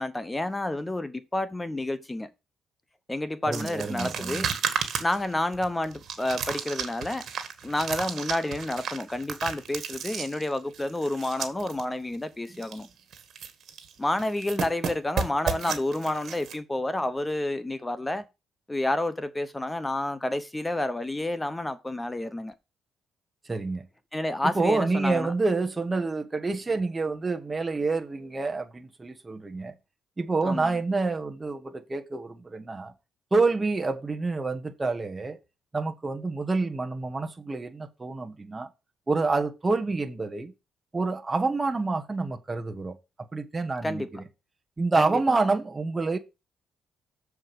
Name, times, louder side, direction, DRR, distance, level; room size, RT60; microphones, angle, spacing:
voice 1, 0.0-2.3 3.1-4.5 5.0-7.3 7.6-12.9 14.0-18.2 18.7-22.5 24.1-25.3 30.4-30.8 43.8-44.1 45.0-45.1, left 1 dB, 15° left, 0.8 m, -30 dB
voice 2, 3.5-4.5 23.5-23.9 24.5-29.7 30.2-32.9 33.3-35.4 35.7-38.7 39.1-40.5 40.9-43.0 43.3-44.2 44.8-46.2, right 3 dB, 25° right, 1.3 m, -28 dB
sound 1, 3.5-11.8 12.1-12.2 12.5-12.9 13.1-13.9 14.2-16.5, right 7 dB, 60° right, 1.7 m, -33 dB
7.3 x 4.8 x 6.8 m
cardioid pair, 90°, 0 cm